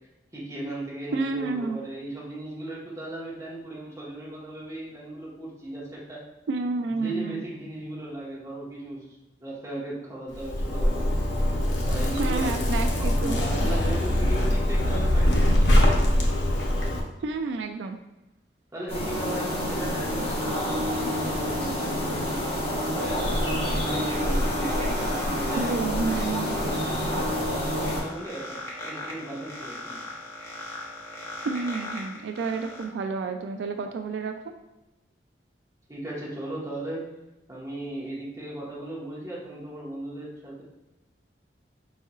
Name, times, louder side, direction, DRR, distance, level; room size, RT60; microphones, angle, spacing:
voice 1, 0.3-6.2 6.9-9.1 9.4-11.1 11.8-12.6 13.0-16.0 18.7-23.4 23.8-30.0 35.9-37.0 37.5-40.6, right 1 dB, 20° right, -6 dB, 1.3 m, -37 dB
voice 2, 1.1-1.8 6.5-7.4 12.1-13.4 17.2-18.0 25.6-26.6 31.4-34.4, right 4 dB, 80° right, 6 dB, 0.3 m, -30 dB
Zipper (clothing), 10.3-17.0, left 1 dB, 85° left, 0.8 m, -23 dB
sound 1, 18.9-28.0, equal, 35° left, 1.3 m, -28 dB
sound 2, 22.9-32.8, left 1 dB, 15° left, 0.9 m, -40 dB
4.5 x 4.2 x 2.4 m, 0.98 s
head